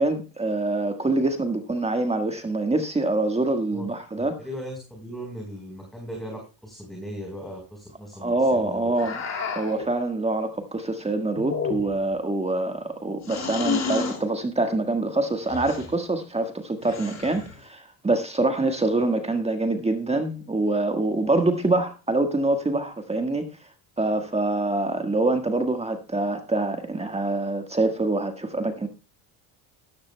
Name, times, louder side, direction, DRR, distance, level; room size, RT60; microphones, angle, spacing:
voice 1, 0.0-4.4 8.2-9.2 9.5-23.4 24.0-28.9, right 2 dB, 15° right, 1.5 m, -25 dB
voice 2, 4.2-8.9, equal, ahead, 4.4 m, -38 dB
sound 1, 9.0-9.9 11.4-12.1 13.2-14.2 15.5-15.9 16.8-17.5, left 5 dB, 40° left, 4.1 m, -30 dB
13.5 x 13.0 x 2.3 m
supercardioid pair, 95°, 42 cm